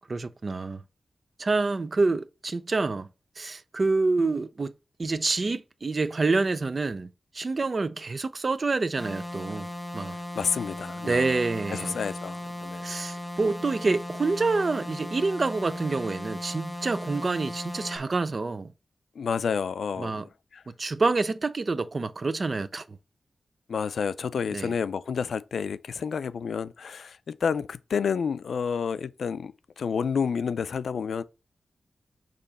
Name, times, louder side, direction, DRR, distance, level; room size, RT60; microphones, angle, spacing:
voice 1, 0.1-0.8 1.4-3.1 3.4-4.7 5.0-7.1 7.3-9.7 9.9-10.2 11.0-12.0 12.8-18.7 20.0-20.3 20.8-22.8 24.5-24.7, right 3 dB, 35° right, 0.5 m, -27 dB
sound 1, 9.0-18.0, left 1 dB, ahead, 1.0 m, -37 dB
voice 2, 10.3-11.2 11.7-12.8 19.2-20.2 20.5-20.6 23.7-31.2, left 6 dB, 85° left, 0.4 m, -30 dB
6.8 x 3.0 x 5.4 m
wide cardioid pair, 170°, 0 cm